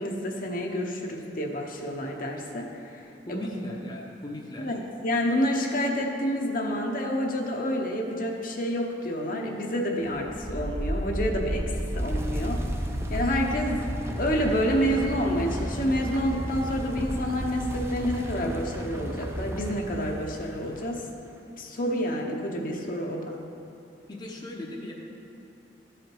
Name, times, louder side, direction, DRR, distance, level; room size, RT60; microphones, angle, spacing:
voice 1, 0.0-3.5 4.6-12.6 13.1-13.9 14.2-21.1 21.6-23.4, equal, 55° left, 1 dB, 0.9 m, -28 dB
voice 2, 3.3-4.7 24.1-24.9, left 1 dB, 25° left, -2 dB, 0.8 m, -37 dB
sound 1, 10.1-20.9, right 1 dB, 15° right, 0.6 m, -32 dB
12.5 x 5.0 x 4.6 m, 2.9 s
head